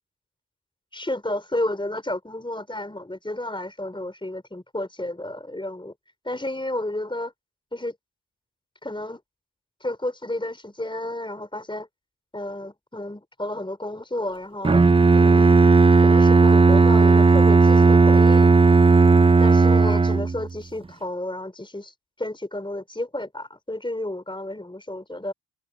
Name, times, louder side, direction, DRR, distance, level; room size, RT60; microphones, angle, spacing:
voice 1, 0.9-5.9 6.2-7.3 7.7-7.9 8.8-9.2 9.8-11.9 12.3-14.8 15.2-15.6 16.0-18.5 19.4-21.9 22.2-25.3, left 1 dB, 10° left, 4.4 m, -31 dB
Bowed string instrument, 14.6-20.5, right 4 dB, 15° right, 0.5 m, -15 dB
cardioid pair, 55°, 41 cm